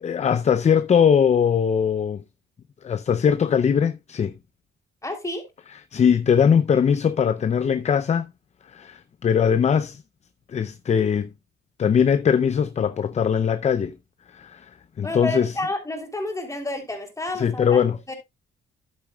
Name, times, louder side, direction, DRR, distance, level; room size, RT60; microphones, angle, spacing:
voice 1, 0.0-2.2 2.8-4.3 5.7-8.3 8.7-10.0 10.5-11.3 11.8-14.0 14.3-14.7 15.0-15.5 17.3-18.0, left 7 dB, 35° left, 0.5 m, -21 dB
voice 2, 5.0-5.5 15.0-17.8 18.1-18.2, left 1 dB, 15° left, 3.1 m, -30 dB
11.0 x 8.5 x 2.3 m
cardioid pair, 90°, 20 cm